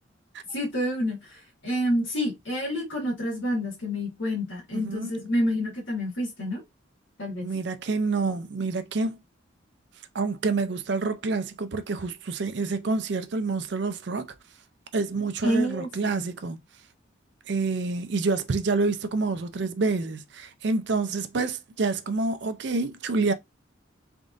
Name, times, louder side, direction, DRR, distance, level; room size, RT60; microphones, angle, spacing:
voice 1, 0.5-6.6 7.2-7.5 15.4-16.3, equal, 75° left, 2.1 m, -28 dB
voice 2, 4.7-5.1 7.4-9.2 10.1-14.3 14.9-16.6 17.5-23.3, right 3 dB, 60° right, 0.5 m, -27 dB
3.6 x 3.6 x 2.5 m
head